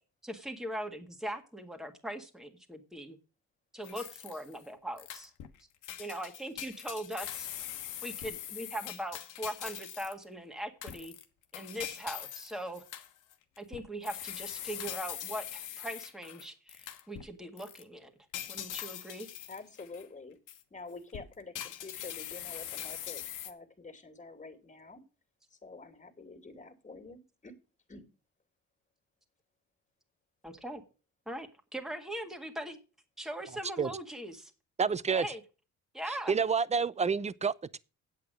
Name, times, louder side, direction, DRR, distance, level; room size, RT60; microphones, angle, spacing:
voice 1, 0.2-3.2 3.7-5.3 6.0-7.5 8.0-11.1 11.5-12.8 13.6-18.1 18.5-19.3 30.4-30.8 31.3-32.8 33.2-34.5 35.1-35.4 35.9-36.3, right 1 dB, ahead, 1.7 m, -40 dB
String Mouse, 3.8-4.6 5.0-5.6 5.8-10.2 10.8-17.3 17.6-17.8 18.3-20.1 20.5-20.6 21.1-23.5, left 11 dB, 85° left, 1.3 m, -42 dB
voice 2, 19.5-20.4 20.7-25.0 25.5-27.5 27.9-28.0, left 3 dB, 25° left, 2.5 m, -48 dB
voice 3, 34.8-35.3 36.1-37.8, right 5 dB, 25° right, 0.6 m, -29 dB
8.4 x 8.3 x 6.3 m
cardioid pair, 90°, 30 cm